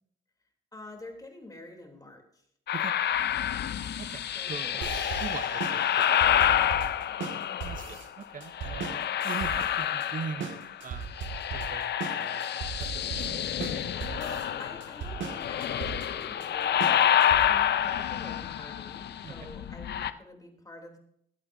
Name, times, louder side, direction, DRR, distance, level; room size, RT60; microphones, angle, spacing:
voice 1, 0.7-2.4 4.3-5.0 6.6-6.9 9.5-10.0 14.1-21.0, left 2 dB, 20° left, 2 dB, 3.2 m, -47 dB
sound 1, 2.7-8.0 8.5-10.8 11.0-20.1, left 10 dB, 60° left, 0.7 m, -28 dB
voice 2, 4.0-4.9 5.2-6.3 7.6-9.0 9.2-10.5 10.8-11.2 11.5-13.5 13.7-14.0 19.2-19.3, right 6 dB, 45° right, 13 dB, 0.8 m, -41 dB
sound 2, 4.8-17.7, right 6 dB, 75° right, 2.1 m, -38 dB
22.0 x 8.7 x 2.7 m, 0.70 s
cardioid pair, 90°, 20 cm